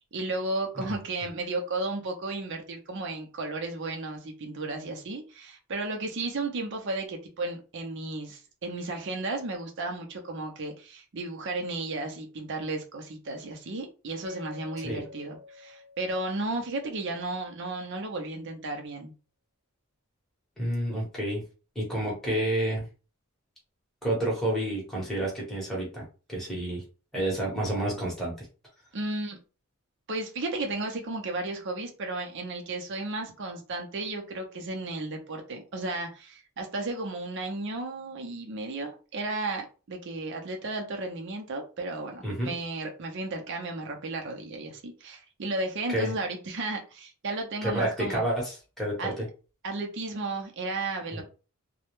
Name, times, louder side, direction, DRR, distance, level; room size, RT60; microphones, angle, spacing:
voice 1, 0.1-19.1 28.9-29.4 30.1-48.3 49.0-49.1 49.6-51.2, right 2 dB, 55° right, 0.5 m, -34 dB
Mallet percussion, 14.3-17.2, left 4 dB, 70° left, 0.4 m, -48 dB
voice 2, 20.6-21.4 21.7-22.8 24.0-26.8 27.1-28.5 42.2-42.5 45.9-46.1 47.6-49.3 51.1-51.2, right 1 dB, ahead, 0.9 m, -29 dB
2.2 x 2.0 x 2.9 m
head